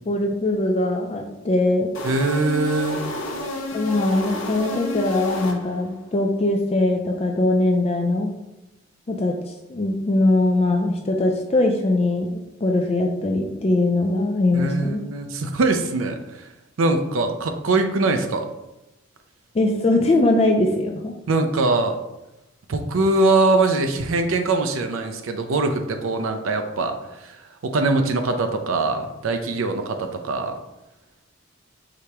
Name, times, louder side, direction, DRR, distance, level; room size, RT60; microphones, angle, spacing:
voice 1, 0.1-1.9 3.7-8.3 9.1-9.4 9.7-15.0 19.5-21.1, left 2 dB, 30° left, 2 dB, 0.3 m, -21 dB
sound 1, 1.9-6.0, left 1 dB, 70° left, 0.8 m, -30 dB
voice 2, 2.0-3.1 14.5-16.2 16.8-18.5 21.3-22.0 22.7-27.0 27.2-27.4 27.6-30.5, right 2 dB, 80° right, 6 dB, 0.5 m, -22 dB
4.8 x 3.4 x 2.9 m, 0.97 s
head